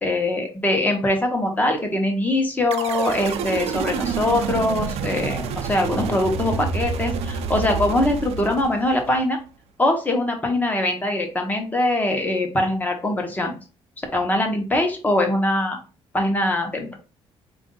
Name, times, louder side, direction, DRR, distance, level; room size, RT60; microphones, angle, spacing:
voice 1, 0.0-9.4 9.8-13.6 14.1-15.8 16.1-17.0, left 1 dB, 15° left, 3 dB, 1.0 m, -22 dB
sound 1, 2.7-9.2, right 6 dB, 75° right, 0.5 m, -28 dB
4.5 x 2.5 x 3.8 m, 0.35 s
cardioid pair, 155°, 11 cm